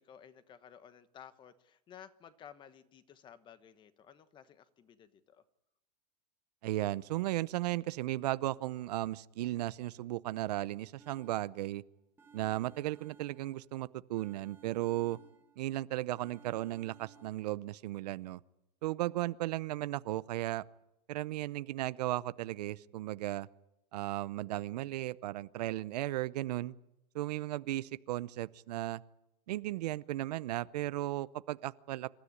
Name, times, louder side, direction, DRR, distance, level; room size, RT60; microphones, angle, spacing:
voice 1, 0.0-5.4, left 8 dB, 20° left, 13 dB, 1.2 m, -55 dB
voice 2, 6.6-11.8 12.3-15.2 15.6-18.4 18.8-20.6 21.1-23.5 23.9-26.7 27.1-29.0 29.5-32.1, right 15 dB, 70° right, 17 dB, 0.8 m, -35 dB
sound 1, 11.0-11.8 12.2-13.8 14.2-15.7 16.2-17.6, right 8 dB, 10° right, 1.6 m, -60 dB
26.5 x 13.0 x 9.7 m, 0.90 s
supercardioid pair, 155°, 21 cm